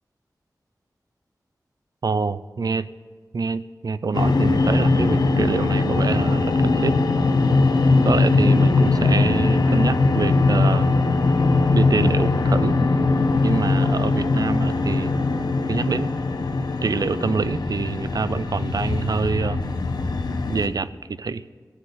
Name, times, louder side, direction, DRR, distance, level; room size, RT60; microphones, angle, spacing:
voice 1, 2.0-2.9 3.3-7.0 8.0-10.9 11.7-12.8 13.4-15.1 15.7-16.1 16.8-19.6 20.5-21.4, right 4 dB, 65° right, 16 dB, 0.5 m, -26 dB
sound 1, 4.1-20.7, left 3 dB, 85° left, 1.0 m, -20 dB
17.0 x 7.9 x 8.6 m, 1.5 s
wide cardioid pair, 80°, 7 cm